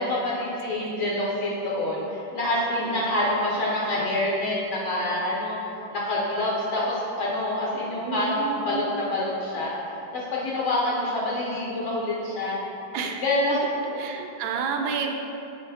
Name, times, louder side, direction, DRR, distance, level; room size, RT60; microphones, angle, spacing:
voice 1, 0.0-5.6 5.9-9.7 10.1-12.6 13.2-13.6, left 1 dB, 60° left, -5 dB, 0.8 m, -26 dB
voice 2, 0.6-1.2 2.8-3.1 7.9-8.9 12.9-13.2 14.0-15.1, right 5 dB, 80° right, 4 dB, 1.3 m, -31 dB
8.1 x 3.4 x 4.1 m, 2.9 s
omnidirectional pair, 2.2 m